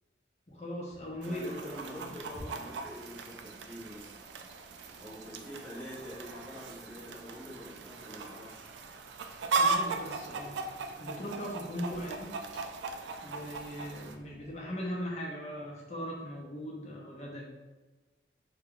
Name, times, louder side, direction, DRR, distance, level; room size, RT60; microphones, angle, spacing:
voice 1, 0.5-2.0 2.7-2.8 9.6-10.6 11.0-12.3 13.2-17.5, equal, 40° left, -3 dB, 0.6 m, -39 dB
sound 1, 0.9-14.6, equal, 45° right, 0.8 m, -56 dB
voice 2, 1.2-4.2 5.0-8.7, equal, 5° left, -8 dB, 0.8 m, -46 dB
Chicken rooster, 1.2-14.2, right 4 dB, 85° right, 0.3 m, -37 dB
2.9 x 2.3 x 3.5 m, 1.2 s
head